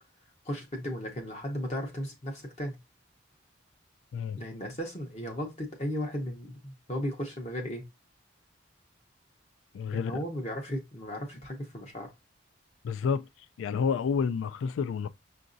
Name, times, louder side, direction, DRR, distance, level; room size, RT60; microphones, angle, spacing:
voice 1, 0.4-2.8 4.4-7.8 9.9-12.1, equal, 35° left, 0.8 m, -35 dB
voice 2, 9.7-10.1 12.8-13.3 13.6-15.1, left 6 dB, 85° left, 0.3 m, -29 dB
5.7 x 2.5 x 2.5 m
head